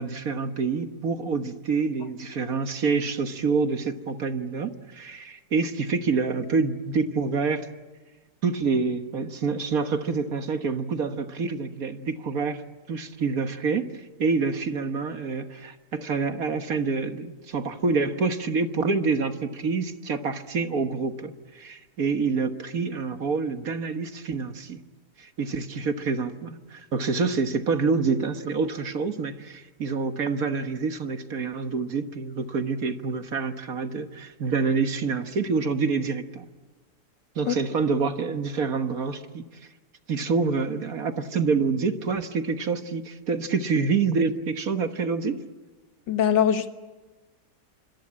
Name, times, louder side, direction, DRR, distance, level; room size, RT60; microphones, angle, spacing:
voice 1, 0.0-7.7 8.4-12.6 12.9-24.8 25.2-36.5 37.4-39.4 40.1-45.4, right 4 dB, 55° right, 1.7 m, -27 dB
voice 2, 46.1-46.7, left 9 dB, 80° left, 2.0 m, -21 dB
26.5 x 24.5 x 8.7 m
omnidirectional pair, 1.9 m